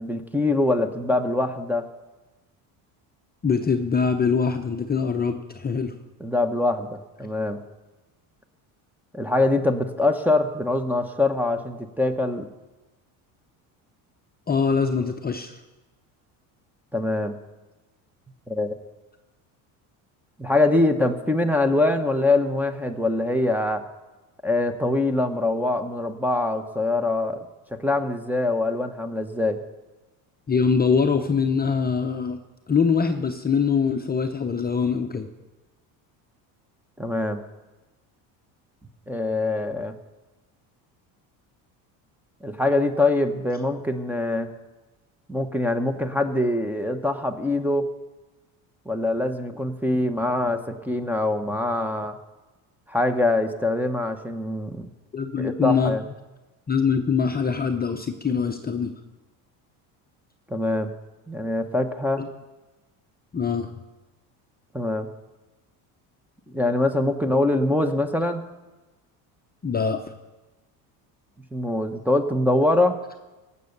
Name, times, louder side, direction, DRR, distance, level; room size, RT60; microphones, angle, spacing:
voice 1, 0.0-1.9 6.2-7.6 9.1-12.5 16.9-17.4 18.5-18.7 20.4-23.8 24.4-27.4 27.7-29.6 37.0-37.4 39.1-39.9 42.4-44.5 45.3-47.9 48.9-52.2 52.9-54.9 55.4-56.0 60.5-60.9 61.3-62.2 64.7-65.1 66.5-68.4 71.5-73.0, left 2 dB, 5° right, 8 dB, 0.9 m, -23 dB
voice 2, 3.4-5.9 14.5-15.6 30.5-32.4 32.7-35.3 55.1-56.0 56.7-58.9 62.2-62.3 63.3-63.7 69.6-70.1, left 5 dB, 20° left, 5 dB, 0.7 m, -23 dB
17.5 x 6.9 x 6.6 m, 1.1 s
supercardioid pair, 100°, 44 cm